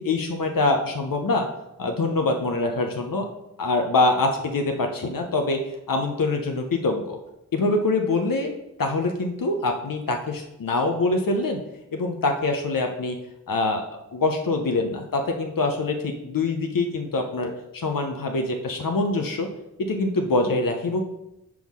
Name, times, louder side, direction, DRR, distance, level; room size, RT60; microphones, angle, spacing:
voice 1, 0.0-1.5 1.8-3.3 3.6-7.2 7.5-8.5 8.8-11.6 11.9-13.2 13.5-19.5 19.8-21.0, left 2 dB, 75° left, 3 dB, 0.7 m, -24 dB
6.1 x 3.6 x 6.1 m, 0.88 s
wide cardioid pair, 80°, 34 cm